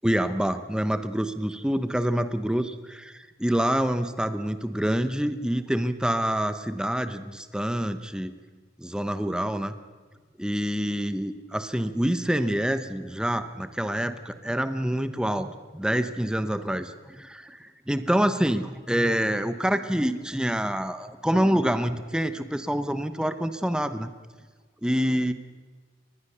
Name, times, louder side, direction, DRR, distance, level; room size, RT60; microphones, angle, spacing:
voice 1, 0.0-8.3 8.8-9.7 10.4-24.1 24.8-25.3, equal, 5° right, 11 dB, 0.9 m, -26 dB
23.5 x 20.0 x 6.8 m, 1.5 s
head